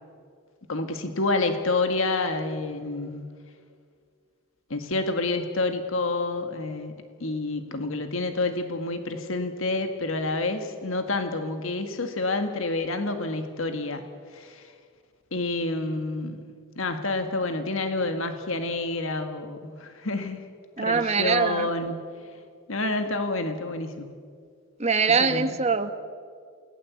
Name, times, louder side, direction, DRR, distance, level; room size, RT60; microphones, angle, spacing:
voice 1, 0.7-3.2 4.7-14.1 14.3-14.7 15.3-20.4 20.8-22.0 22.7-24.1 25.2-25.5, left 2 dB, 70° left, 7 dB, 1.7 m, -28 dB
voice 2, 20.8-21.7 24.8-25.9, right 5 dB, 30° right, 9 dB, 1.4 m, -23 dB
29.0 x 19.5 x 8.3 m, 2.1 s
head